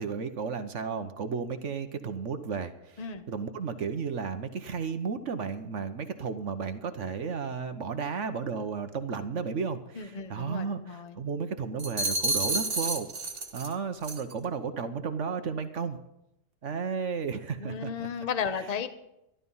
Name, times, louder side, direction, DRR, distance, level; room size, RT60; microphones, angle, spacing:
voice 1, 0.0-3.0 3.3-13.1 13.5-16.0 16.6-17.9, right 5 dB, 55° right, 9 dB, 1.2 m, -33 dB
voice 2, 9.9-11.2 17.6-18.9, left 6 dB, 30° left, 10 dB, 0.8 m, -34 dB
sound 1, 11.8-13.7 14.0-14.3, right 2 dB, 35° right, 1.5 m, -30 dB
12.5 x 12.5 x 5.5 m, 0.83 s
omnidirectional pair, 1.7 m